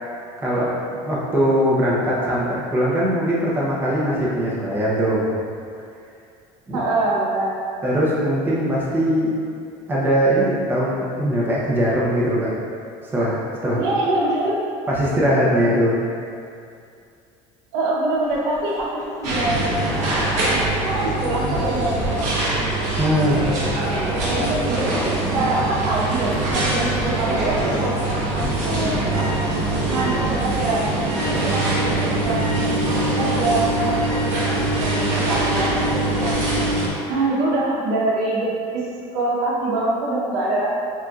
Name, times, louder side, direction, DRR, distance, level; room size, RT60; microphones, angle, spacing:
voice 1, 0.4-5.3 6.7-6.8 7.8-9.3 9.9-12.5 13.1-13.8 14.9-16.0 23.0-23.5, equal, 15° right, -7 dB, 0.8 m, -21 dB
voice 2, 6.7-7.6 13.8-14.6 17.7-20.2 20.8-22.5 24.2-24.9 25.3-29.5 29.9-30.9 31.2-36.4 37.1-38.8 39.1-40.8, right 2 dB, 85° right, -5 dB, 1.0 m, -25 dB
Dog, 18.2-31.9, left 1 dB, 20° left, 1.2 m, -39 dB
sound 1, 19.2-36.9, right 2 dB, 60° right, 1.1 m, -23 dB
7.3 x 2.7 x 2.4 m, 2.4 s
cardioid pair, 135°, 14 cm